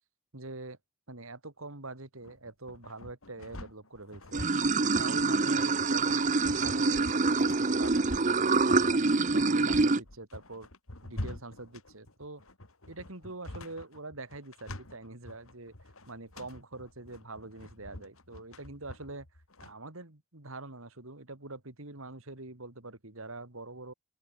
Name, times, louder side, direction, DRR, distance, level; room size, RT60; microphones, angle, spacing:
voice 1, 0.3-0.8 1.1-4.5 5.0-9.0 9.3-10.7 11.0-12.4 12.9-15.7 16.1-19.3 19.6-23.9, right 2 dB, 70° right, 2.9 m, -44 dB
sound 1, 2.2-19.7, left 1 dB, 75° left, 3.3 m, -45 dB
Water / Sink (filling or washing), 4.3-10.0, right 3 dB, 35° right, 0.7 m, -26 dB
open air
head